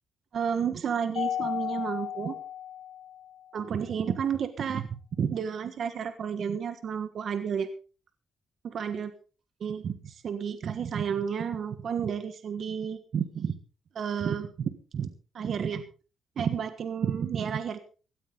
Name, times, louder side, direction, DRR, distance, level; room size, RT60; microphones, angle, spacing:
voice 1, 0.3-2.4 3.5-7.7 8.6-9.1 9.6-13.5 13.9-15.1 15.3-15.8 16.4-17.8, right 7 dB, 60° right, 10 dB, 1.4 m, -31 dB
Mallet percussion, 1.2-3.6, left 10 dB, 70° left, 4.0 m, -34 dB
16.5 x 14.0 x 3.9 m, 0.36 s
cardioid pair, 105°, 0 cm